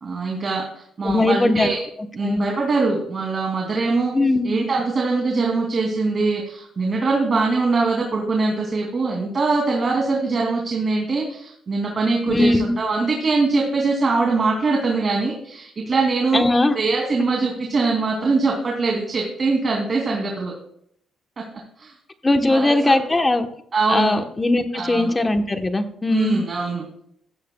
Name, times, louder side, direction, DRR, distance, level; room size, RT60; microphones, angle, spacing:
voice 1, 0.0-1.8 2.1-4.2 4.4-16.4 16.7-20.5 21.4-21.5 21.8-21.9 22.5-23.0 23.7-24.2 24.7-25.1 26.1-26.9, right 3 dB, 40° right, -1 dB, 2.6 m, -22 dB
voice 2, 1.0-1.7 2.2-2.4 4.1-4.5 12.3-12.7 16.3-16.8 22.2-23.5 23.9-26.4, left 2 dB, 20° left, 7 dB, 1.0 m, -19 dB
15.0 x 13.5 x 2.3 m, 0.68 s
cardioid pair, 90°, 0 cm